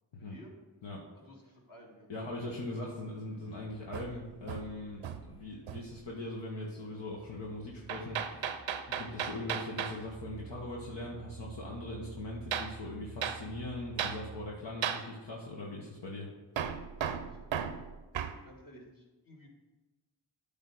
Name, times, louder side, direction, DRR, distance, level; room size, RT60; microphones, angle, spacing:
voice 1, 0.2-0.5 1.1-2.1 3.3-3.4 17.0-17.8 18.4-19.5, left 1 dB, 45° left, -1 dB, 2.2 m, -55 dB
voice 2, 2.1-8.4 8.9-16.3, left 2 dB, 65° left, -3 dB, 1.3 m, -41 dB
Musical instrument, 3.5-9.1, right 2 dB, 10° left, 0.9 m, -60 dB
Hammer, 3.9-5.4 5.7-6.0 7.9-10.0 12.5-12.8 13.2-13.4 14.0-14.2 14.8-15.1 16.6-18.4, right 8 dB, 75° right, 0.6 m, -36 dB
sound 1, 8.6-15.1, right 6 dB, 30° right, 0.7 m, -51 dB
8.7 x 3.7 x 6.1 m, 1.2 s
cardioid pair, 40°, 46 cm